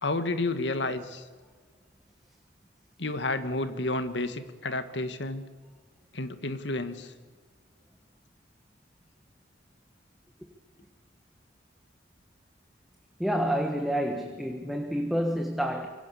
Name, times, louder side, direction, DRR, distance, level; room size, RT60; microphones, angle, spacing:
voice 1, 0.0-1.2 3.0-5.5 6.1-7.1, left 2 dB, 75° left, 1.8 m, -31 dB
voice 2, 13.2-15.9, equal, ahead, 1.5 m, -28 dB
26.0 x 23.5 x 7.2 m
head